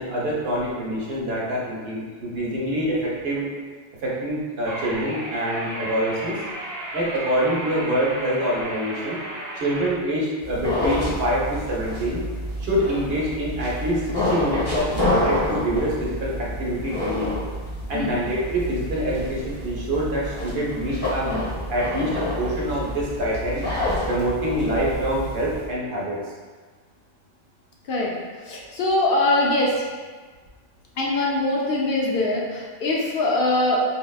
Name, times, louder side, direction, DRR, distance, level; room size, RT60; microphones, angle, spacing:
voice 1, 0.0-3.5 4.0-6.4 6.9-9.2 9.6-12.2 12.6-17.3 17.9-21.4 21.7-23.6 24.1-26.2, right 1 dB, 75° right, -5 dB, 0.9 m, -25 dB
sound 1, 4.6-9.9, right 1 dB, 30° right, 0.9 m, -34 dB
sound 2, 10.4-25.7, left 1 dB, 25° left, 0.8 m, -28 dB
voice 2, 28.4-29.8 31.0-33.8, left 2 dB, 65° left, -3 dB, 0.7 m, -22 dB
3.7 x 2.1 x 2.3 m, 1.4 s
omnidirectional pair, 1.0 m